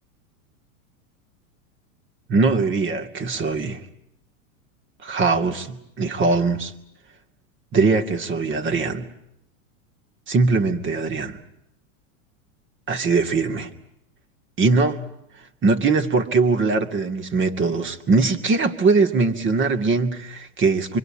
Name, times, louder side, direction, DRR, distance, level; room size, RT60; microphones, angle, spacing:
voice 1, 2.3-3.8 5.0-6.7 7.7-9.1 10.3-11.4 12.9-13.7 14.6-15.0 15.6-21.0, right 4 dB, 25° right, 8 dB, 2.4 m, -21 dB
25.0 x 24.5 x 8.8 m, 0.82 s
hypercardioid pair, 115°, 42 cm